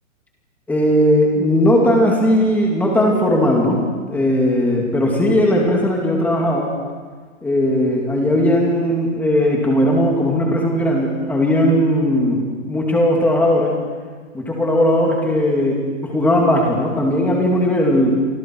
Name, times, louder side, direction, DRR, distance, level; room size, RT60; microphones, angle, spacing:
voice 1, 0.7-6.7 7.4-12.4 12.7-13.7 14.3-18.2, left 1 dB, 5° left, -1 dB, 2.5 m, -17 dB
29.5 x 24.5 x 4.7 m, 1.5 s
hypercardioid pair, 170°, 41 cm